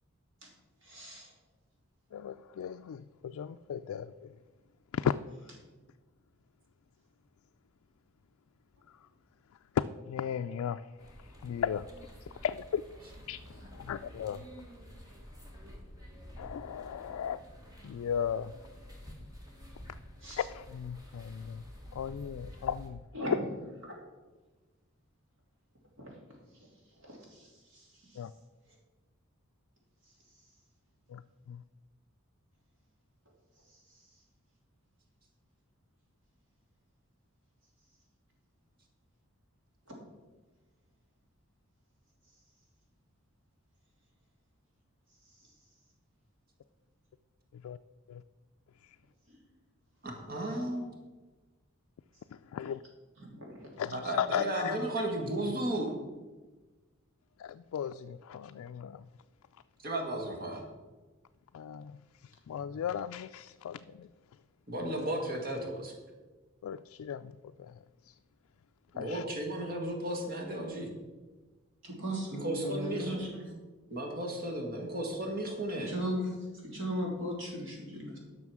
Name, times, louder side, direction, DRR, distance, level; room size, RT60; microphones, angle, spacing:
voice 1, 0.8-1.3 20.2-20.4 23.1-23.5 23.8-23.9 26.0-26.1 27.0-28.2 49.3-49.4 53.2-53.7 71.8-73.5 75.9-76.2 76.6-78.2, equal, 60° right, -1 dB, 3.0 m, -38 dB
voice 2, 2.1-4.3 4.9-5.1 9.7-10.8 11.4-11.9 12.2-12.8 13.3-14.4 16.4-17.4 17.8-18.5 20.4-21.6 21.9-23.0 28.2-28.3 31.1-31.2 31.5-31.6 47.5-47.8 48.1-48.2 48.8-49.0 52.3-52.8 53.8-54.8 57.4-59.0 61.5-62.0 62.2-64.1 66.6-67.3 67.6-67.8 68.1-68.2 69.0-69.2, left 8 dB, 80° left, 8 dB, 0.3 m, -36 dB
sound 1, 11.0-22.9, equal, 15° right, 1.5 m, -50 dB
voice 3, 50.0-50.9 53.9-55.9 59.8-60.6 64.7-66.0 68.9-70.9 72.4-73.3 73.9-75.9, right 1 dB, 45° right, 2 dB, 1.6 m, -34 dB
11.0 x 6.2 x 6.2 m, 1.3 s
head